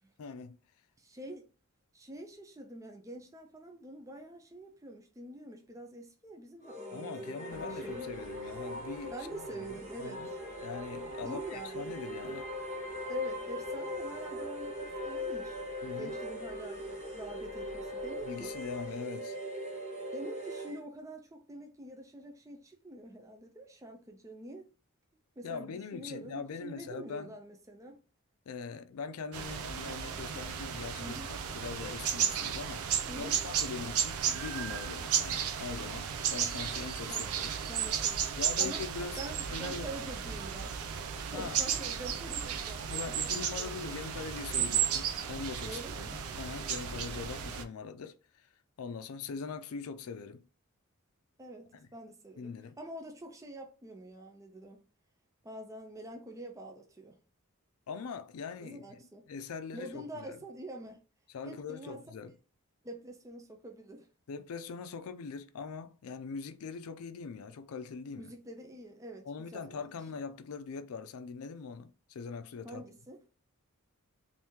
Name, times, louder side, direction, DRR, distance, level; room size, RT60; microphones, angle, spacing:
voice 1, 0.2-0.6 6.9-9.6 10.0-10.3 10.6-12.5 15.8-16.1 18.2-19.4 25.4-27.3 28.5-32.9 33.2-37.5 38.4-39.2 39.5-39.9 41.3-41.6 42.9-48.4 48.8-50.4 51.7-51.9 52.4-52.7 57.9-59.0 59.3-60.4 61.3-62.3 64.3-68.3 69.2-72.8, left 5 dB, 75° left, 0.4 m, -42 dB
voice 2, 1.0-1.4 1.9-8.1 9.1-10.2 11.2-11.9 13.1-15.6 16.0-18.5 20.1-24.7 25.4-28.0 31.0-31.4 33.1-33.4 37.1-37.3 37.7-38.2 38.6-38.9 39.2-40.9 41.3-43.3 43.6-44.2 45.6-46.2 51.4-54.8 55.4-57.2 58.6-59.3 59.7-61.0 61.4-62.0 62.8-64.1 68.1-70.0 72.6-73.2, right 1 dB, 15° right, 0.4 m, -46 dB
sound 1, 6.6-20.8, left 1 dB, 30° right, 1.0 m, -40 dB
sound 2, 7.5-18.9, right 1 dB, 60° right, 1.3 m, -57 dB
sound 3, 29.3-47.6, right 8 dB, 80° right, 0.5 m, -34 dB
2.8 x 2.6 x 3.5 m
head